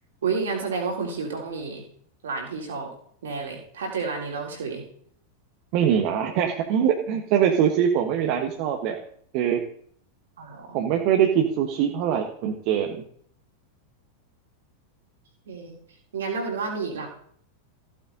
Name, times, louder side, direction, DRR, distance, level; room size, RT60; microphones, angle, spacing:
voice 1, 0.2-1.8 2.2-2.9 3.2-4.8 10.4-10.8 15.5-15.7 16.1-17.1, right 4 dB, 65° right, 1 dB, 3.4 m, -30 dB
voice 2, 5.7-9.0 9.3-9.6 10.7-13.0, right 9 dB, 45° right, 3 dB, 1.3 m, -23 dB
15.0 x 8.7 x 4.0 m, 0.62 s
figure-of-eight pair, 90°, 0 cm